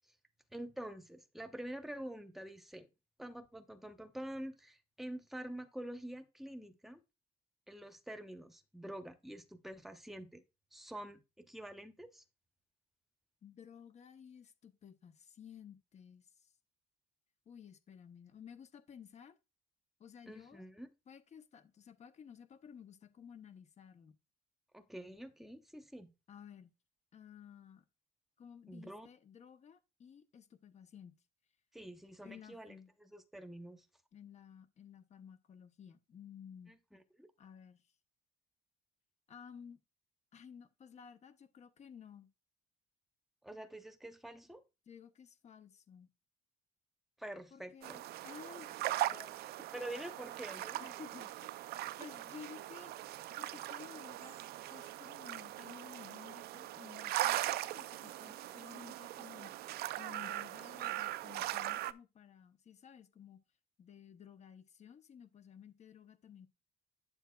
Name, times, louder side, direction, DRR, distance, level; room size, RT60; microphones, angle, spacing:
voice 1, 0.5-2.9 3.2-7.0 7.7-10.4 10.7-12.2 20.3-20.9 24.7-26.1 28.7-29.1 31.7-33.9 36.7-37.3 43.4-44.6 47.2-48.0 49.1-49.3 49.7-50.8, right 1 dB, ahead, 0.9 m, -47 dB
voice 2, 13.4-16.5 17.5-19.4 20.0-20.7 21.1-24.2 26.3-26.7 27.1-27.8 28.4-31.2 32.2-32.9 34.1-36.8 37.4-37.8 39.3-39.8 40.3-42.3 44.9-46.1 47.5-49.3 49.7-49.9 50.8-51.6 52.0-52.9 53.4-54.4 54.7-63.4 63.8-66.5, left 8 dB, 40° left, 0.9 m, -55 dB
sound 1, 47.8-61.9, right 15 dB, 70° right, 0.5 m, -40 dB
9.1 x 7.3 x 2.3 m
cardioid pair, 110°, 17 cm